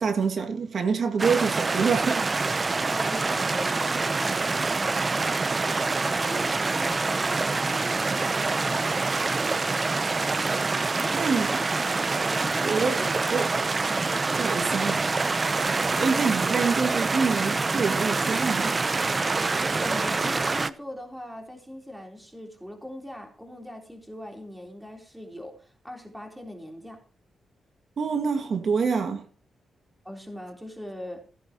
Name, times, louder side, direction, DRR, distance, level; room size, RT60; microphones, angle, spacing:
voice 1, 0.0-2.3 11.1-11.6 12.6-13.5 14.4-15.0 15.7-18.7 28.0-29.3, right 5 dB, 60° right, 2.1 m, -26 dB
sound 1, 1.2-20.7, right 3 dB, 30° right, 0.7 m, -26 dB
voice 2, 2.9-11.7 12.2-13.2 13.5-13.6 14.3-14.6 15.9-16.3 19.5-27.0 30.0-31.2, equal, 5° right, 3.6 m, -41 dB
16.5 x 9.4 x 2.9 m
cardioid pair, 95°, 0 cm